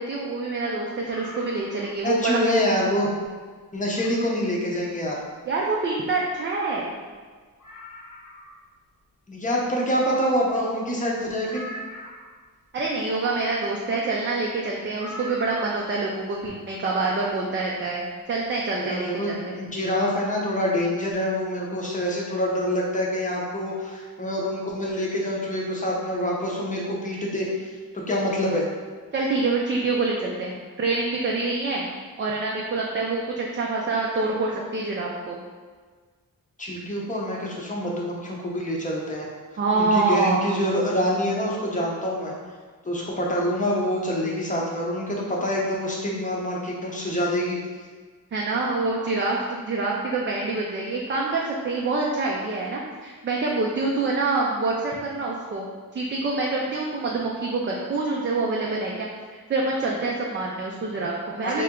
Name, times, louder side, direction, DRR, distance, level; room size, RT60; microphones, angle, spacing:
voice 1, 0.0-2.4 5.5-7.0 12.7-19.6 29.1-31.9 32.2-35.4 39.6-40.5 48.3-55.7 55.9-61.6, right 3 dB, 35° right, -3 dB, 0.4 m, -26 dB
sound 1, 1.0-2.1 2.6-2.7 3.2-3.3 3.9-4.5 6.3-6.4 6.6-6.7 7.1-7.2 7.6-8.7 11.5-12.4 15.0-16.0 17.3-17.4, equal, 55° left, 0.8 m, -41 dB
voice 2, 2.0-3.1 3.7-5.2 9.3-11.6 18.7-27.7 27.9-28.6 36.6-39.3 39.7-42.3 42.8-47.6 61.4-61.6, equal, 20° left, -3 dB, 0.7 m, -26 dB
3.3 x 2.9 x 3.6 m, 1.5 s
wide cardioid pair, 135°, 36 cm